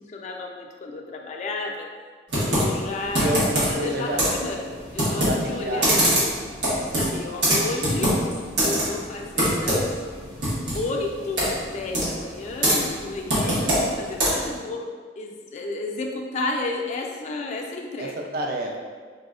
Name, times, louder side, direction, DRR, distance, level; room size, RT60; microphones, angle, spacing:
voice 1, 0.0-1.9 2.5-3.3 3.7-6.2 6.8-8.1 8.6-9.9 10.7-14.9 15.2-18.1, left 3 dB, 40° left, 1 dB, 0.3 m, -32 dB
Computer keyboard, 2.3-14.6, equal, 85° right, 1.0 m, -24 dB
voice 2, 2.6-4.2 5.2-6.2 18.0-18.8, right 1 dB, 60° right, 0 dB, 0.4 m, -29 dB
4.0 x 2.1 x 2.3 m, 1.6 s
head